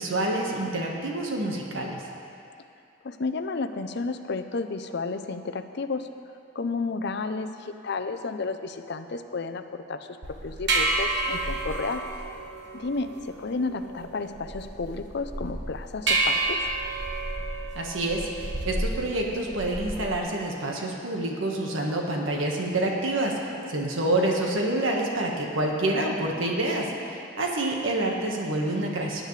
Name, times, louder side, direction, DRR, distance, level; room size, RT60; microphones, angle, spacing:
voice 1, 0.0-2.0 17.7-29.2, right 1 dB, 90° right, 0 dB, 1.5 m, -27 dB
voice 2, 3.0-6.1 6.5-12.0 12.7-16.6, left 3 dB, 60° left, 8 dB, 0.6 m, -32 dB
sound 1, 10.2-20.2, right 2 dB, 60° right, 1.3 m, -30 dB
18.5 x 9.7 x 3.3 m, 2.6 s
head